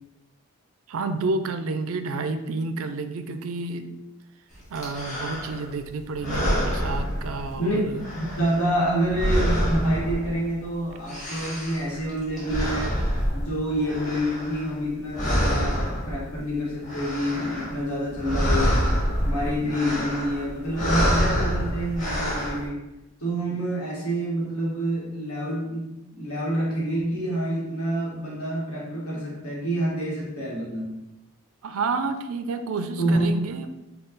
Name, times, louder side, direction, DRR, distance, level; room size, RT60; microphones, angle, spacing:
voice 1, 0.9-3.9 4.7-8.0 31.6-33.7, right 3 dB, 70° right, 8 dB, 0.4 m, -30 dB
sound 1, 4.7-5.7 6.1-7.7 7.9-10.6 10.9-14.9 15.1-16.4 16.7-17.8 18.1-22.6, equal, 35° left, 1.5 m, -27 dB
voice 2, 8.3-13.0 13.3-18.8 19.2-22.8 23.2-31.0 33.0-33.3, right 1 dB, 85° left, -4 dB, 1.5 m, -27 dB
5.4 x 2.3 x 3.9 m, 0.96 s
head